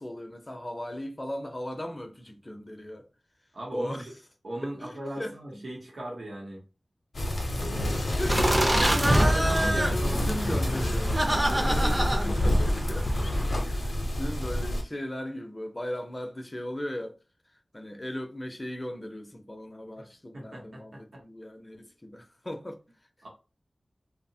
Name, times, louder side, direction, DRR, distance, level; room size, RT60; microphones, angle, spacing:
voice 1, 0.0-3.1 3.7-4.1 4.8-5.6 8.2-8.6 9.3-11.2 11.5-13.1 13.6-17.1 17.7-22.8, left 1 dB, 25° left, 0.5 m, -37 dB
voice 2, 3.5-4.1 4.4-6.6 7.5-8.0 8.6-10.4 11.3-11.5 13.5-13.9 20.0-20.1 20.3-21.2 23.2-23.3, right 1 dB, 80° right, 0.8 m, -39 dB
sound 1, 7.1-14.8, left 1 dB, 75° left, 0.6 m, -28 dB
sound 2, 8.3-13.5, right 1 dB, 25° right, 0.5 m, -26 dB
2.8 x 2.0 x 2.6 m
wide cardioid pair, 75°, 0 cm